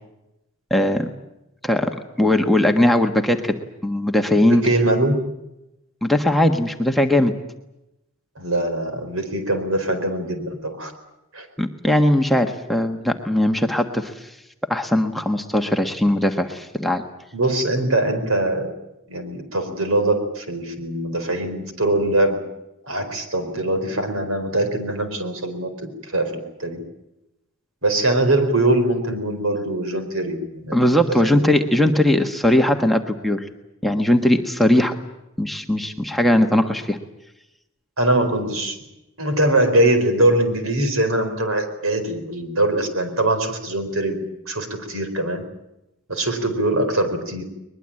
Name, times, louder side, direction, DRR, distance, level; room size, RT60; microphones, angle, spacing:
voice 1, 0.7-1.1 1.6-3.6 3.8-4.6 6.0-7.3 11.6-14.3 14.7-17.0 30.7-33.5 33.8-35.0 35.4-37.0, left 1 dB, ahead, 4 dB, 1.4 m, -19 dB
voice 2, 4.4-5.2 8.4-10.9 11.3-11.5 17.3-18.7 19.1-22.4 22.9-26.8 27.8-30.8 31.2-31.6 38.0-38.8 39.2-45.4 46.1-47.4, right 1 dB, 75° right, 7 dB, 4.5 m, -22 dB
22.0 x 21.5 x 8.9 m, 0.90 s
head